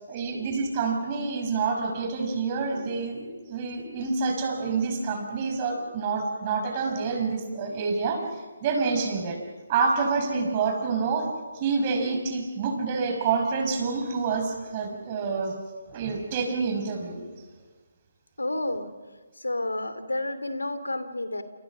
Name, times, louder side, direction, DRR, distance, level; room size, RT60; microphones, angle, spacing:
voice 1, 0.0-8.2 8.6-9.4 9.7-11.3 11.5-15.6 15.9-17.2, right 4 dB, 30° right, 2 dB, 5.8 m, -27 dB
voice 2, 18.4-18.9 19.4-21.4, left 1 dB, 85° left, 11 dB, 2.8 m, -30 dB
28.5 x 28.0 x 6.3 m, 1.4 s
figure-of-eight pair, 145°, 0 cm